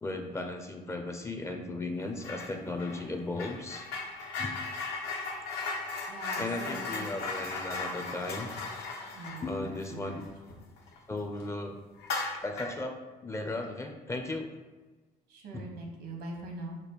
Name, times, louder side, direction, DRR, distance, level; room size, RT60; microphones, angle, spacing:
voice 1, 0.0-3.9 4.4-4.5 6.4-8.5 9.4-10.2 11.1-11.8 12.4-14.5 15.5-15.6, left 2 dB, 15° left, 4 dB, 0.5 m, -36 dB
sound 1, 2.2-2.5 2.8-11.0 11.3-11.5 12.0-12.8, left 3 dB, 80° left, 1.0 m, -37 dB
voice 2, 6.1-7.2 9.1-10.2 15.3-16.8, right 2 dB, 80° right, 1 dB, 1.1 m, -42 dB
5.1 x 2.2 x 4.5 m, 1.3 s
cardioid pair, 110°, 17 cm